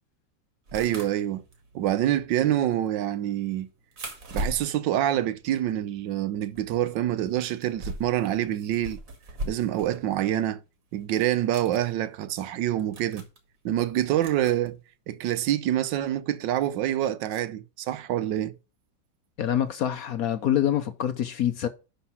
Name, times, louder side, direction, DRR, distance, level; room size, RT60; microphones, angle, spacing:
sound 1, 0.7-6.1 6.4-10.0 10.4-10.5 11.3-11.8 12.5-12.6 12.8-13.4 14.2-14.7 16.1-16.2 17.3-17.4, right 1 dB, 50° right, 1.9 m, -39 dB
voice 1, 0.7-1.4 1.7-3.7 4.3-9.0 9.5-10.6 10.9-13.2 13.6-14.8 15.1-18.6, right 12 dB, 80° right, 1.3 m, -26 dB
voice 2, 19.4-21.7, left 10 dB, 65° left, 0.9 m, -26 dB
11.0 x 3.8 x 6.0 m
omnidirectional pair, 2.0 m